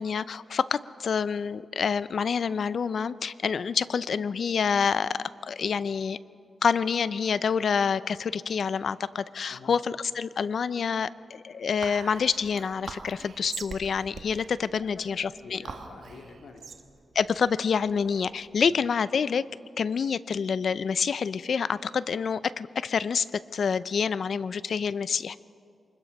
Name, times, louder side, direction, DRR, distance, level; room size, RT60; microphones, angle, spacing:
voice 1, 0.0-6.2 6.6-15.6 17.1-19.5 19.8-25.4, left 6 dB, 70° left, 17 dB, 0.5 m, -27 dB
Whispering, 11.8-18.5, right 5 dB, 65° right, 1.3 m, -43 dB
voice 2, 15.4-16.7 18.7-18.8, left 4 dB, 90° left, 3 dB, 2.2 m, -47 dB
24.0 x 21.0 x 5.3 m, 2.4 s
cardioid pair, 80°, 0 cm